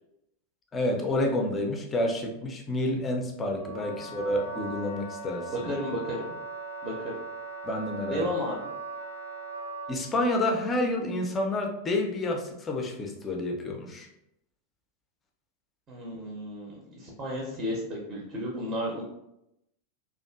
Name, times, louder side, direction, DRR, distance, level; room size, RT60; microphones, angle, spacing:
voice 1, 0.7-5.5 7.6-8.3 9.9-14.1, left 1 dB, 20° left, 2 dB, 0.5 m, -29 dB
Wind instrument woodwind instrument, 3.5-10.1, right 3 dB, 75° left, 0.4 m, -39 dB
voice 2, 5.5-6.3 6.8-7.1 8.1-8.7 15.9-19.0, equal, 25° right, -3 dB, 0.6 m, -33 dB
2.5 x 2.4 x 2.3 m, 0.84 s
figure-of-eight pair, 90°, 0 cm